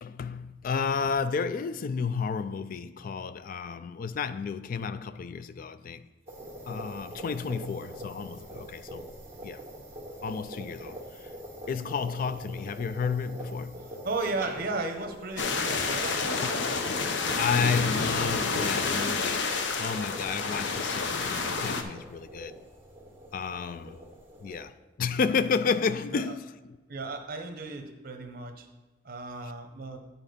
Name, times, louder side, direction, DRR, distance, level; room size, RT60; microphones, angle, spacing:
voice 1, 0.0-6.1 6.7-9.1 9.4-9.6 10.2-11.3 11.7-13.9 17.4-22.6 23.3-24.0 24.4-26.8, left 5 dB, 50° left, 0.3 m, -31 dB
sound 1, 6.3-24.6, equal, 15° right, 1.9 m, -44 dB
voice 2, 14.0-16.5 26.1-26.3 26.9-28.7 29.0-30.0, right 3 dB, 55° right, 0.9 m, -35 dB
sound 2, 15.4-21.8, left 4 dB, 75° left, 0.7 m, -29 dB
9.8 x 4.3 x 5.2 m
head